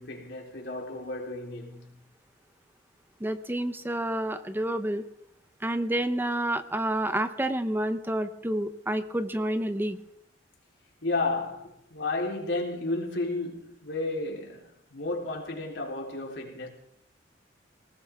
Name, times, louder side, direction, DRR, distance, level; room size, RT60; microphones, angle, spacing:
voice 1, 0.0-2.0 11.0-16.7, left 2 dB, 90° left, 3.8 m, -32 dB
voice 2, 3.2-5.0 5.6-10.0, right 1 dB, 10° right, 0.7 m, -29 dB
20.5 x 19.0 x 3.6 m
head